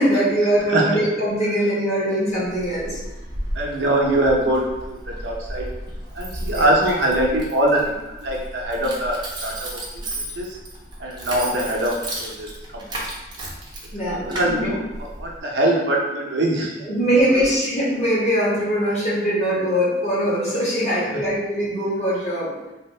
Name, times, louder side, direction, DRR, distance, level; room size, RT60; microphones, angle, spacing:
voice 1, 0.0-3.0 6.5-6.7 13.9-14.7 16.8-22.7, equal, 40° left, -8 dB, 1.2 m, -22 dB
voice 2, 0.7-1.0 3.5-5.7 6.1-7.8 8.2-9.8 10.4-10.6 11.0-12.8 14.3-14.9 15.2-16.8 17.3-17.4, right 1 dB, 75° right, -2 dB, 0.6 m, -22 dB
Keys jangling, 2.3-15.4, right 1 dB, 25° right, 0.6 m, -34 dB
2.7 x 2.6 x 3.2 m, 1.0 s
head